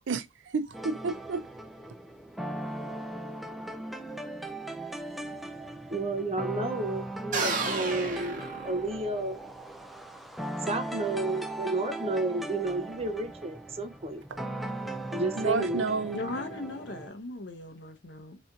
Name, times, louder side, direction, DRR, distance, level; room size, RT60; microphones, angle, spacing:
voice 1, 0.1-1.5 14.3-14.4 15.4-16.2, right 4 dB, 85° right, 0.5 m, -30 dB
sound 1, 0.7-17.1, right 1 dB, ahead, 0.3 m, -38 dB
voice 2, 5.6-9.4 10.7-14.2 15.1-15.9, right 2 dB, 35° right, 0.6 m, -32 dB
sound 2, 7.3-9.3, right 3 dB, 50° right, 1.1 m, -32 dB
voice 3, 16.1-18.4, left 2 dB, 70° left, 0.8 m, -38 dB
4.0 x 2.9 x 2.4 m
head